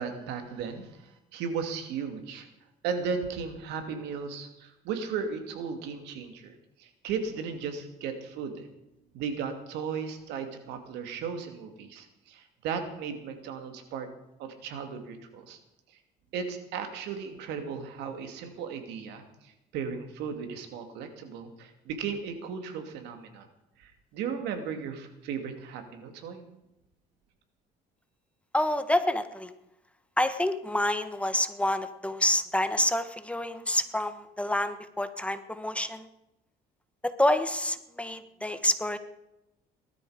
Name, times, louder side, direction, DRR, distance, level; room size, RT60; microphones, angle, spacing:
voice 1, 0.0-2.5 2.8-6.5 6.8-8.7 9.1-14.1 14.4-15.6 16.3-23.5 23.8-26.4, right 6 dB, 90° right, 6 dB, 2.7 m, -36 dB
voice 2, 28.5-29.5 30.2-36.1 37.2-39.0, left 1 dB, 5° left, 10 dB, 1.2 m, -28 dB
18.5 x 13.0 x 5.1 m, 0.89 s
cardioid pair, 110°, 17 cm